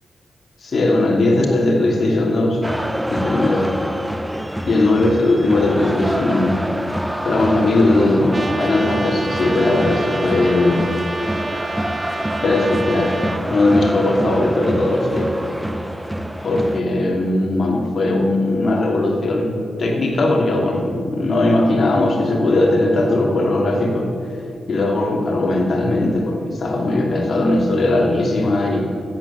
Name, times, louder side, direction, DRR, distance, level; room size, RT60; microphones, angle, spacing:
voice 1, 0.6-2.6 3.1-3.7 4.7-6.6 6.8-6.9 7.2-10.9 12.4-13.2 13.4-15.5 16.4-24.4 24.7-28.8, left 2 dB, 55° left, 0 dB, 2.7 m, -18 dB
sound 1, 2.6-16.8, equal, 5° right, 0.6 m, -26 dB
Trumpet, 8.3-13.4, right 3 dB, 25° right, 1.0 m, -29 dB
13.0 x 9.3 x 7.3 m, 2.5 s
cardioid pair, 85°, 0 cm